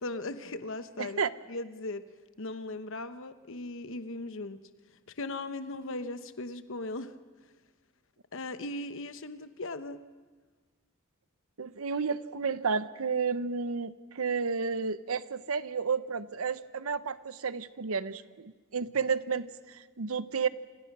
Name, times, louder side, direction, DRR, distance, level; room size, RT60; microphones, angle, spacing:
voice 1, 0.0-1.2 1.5-2.1 2.4-4.6 5.2-7.2 8.3-10.0, left 2 dB, 65° left, 11 dB, 1.0 m, -38 dB
voice 2, 1.0-1.3 11.6-20.5, right 5 dB, 80° right, 14 dB, 0.8 m, -31 dB
28.5 x 25.5 x 6.1 m, 1.4 s
head